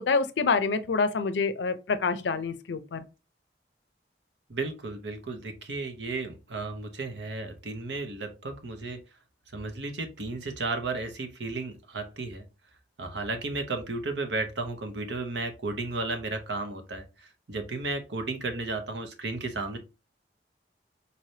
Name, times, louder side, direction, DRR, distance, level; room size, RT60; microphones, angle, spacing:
voice 1, 0.0-3.0, left 4 dB, 90° left, 0.5 m, -27 dB
voice 2, 4.5-9.0 9.5-12.4 13.0-19.8, right 3 dB, 90° right, 0.9 m, -34 dB
4.2 x 3.3 x 2.7 m
head